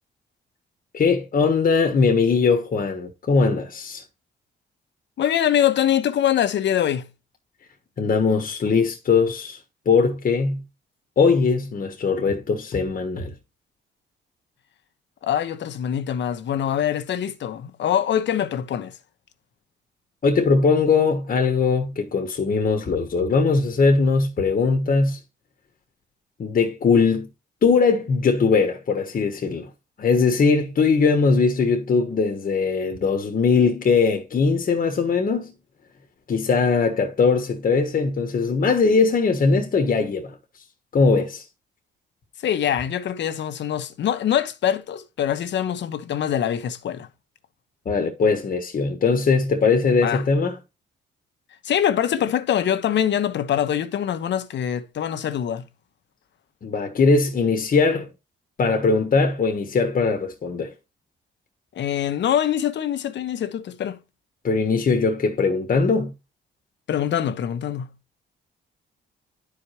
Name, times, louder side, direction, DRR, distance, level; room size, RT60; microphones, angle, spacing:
voice 1, 0.9-4.0 8.0-9.6 9.8-10.6 11.2-13.3 20.2-25.2 26.4-27.3 27.6-29.7 30.0-35.5 36.3-40.4 40.9-41.4 47.8-50.6 56.6-58.1 58.6-60.7 64.4-66.1, left 4 dB, 45° left, 1.4 m, -20 dB
voice 2, 5.2-7.1 15.2-19.0 42.4-47.1 50.0-50.2 51.6-55.7 61.7-64.0 66.9-67.9, left 10 dB, 65° left, 1.1 m, -24 dB
11.5 x 5.0 x 2.9 m
cardioid pair, 90°, 20 cm